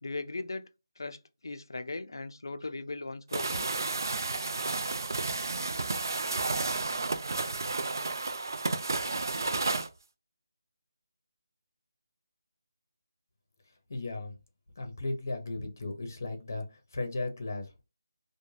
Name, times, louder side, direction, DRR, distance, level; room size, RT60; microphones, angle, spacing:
voice 1, 0.0-0.7 1.0-3.7, left 3 dB, 85° left, 0.4 m, -38 dB
sound 1, 3.3-9.9, right 3 dB, 60° right, 0.3 m, -31 dB
voice 2, 13.9-14.3 14.8-17.8, left 2 dB, 45° left, 0.7 m, -36 dB
2.5 x 2.1 x 3.1 m
figure-of-eight pair, 175°, 2 cm